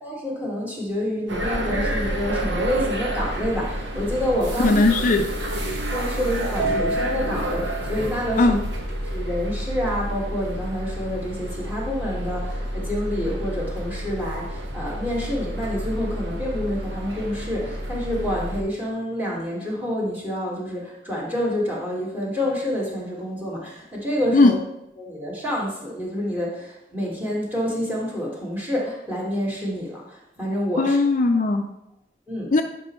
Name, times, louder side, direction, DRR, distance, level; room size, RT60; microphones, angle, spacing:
voice 1, 0.0-4.8 5.9-8.6 8.9-24.6 25.0-31.0 32.3-32.5, equal, 10° right, -4 dB, 1.8 m, -28 dB
sound 1, 1.3-18.6, right 1 dB, 75° right, 1.3 m, -29 dB
voice 2, 4.6-5.2 8.4-8.5 24.3-24.5 30.8-31.7 32.5-32.6, left 3 dB, 45° left, 5 dB, 0.5 m, -17 dB
10.5 x 5.2 x 3.1 m, 0.86 s
head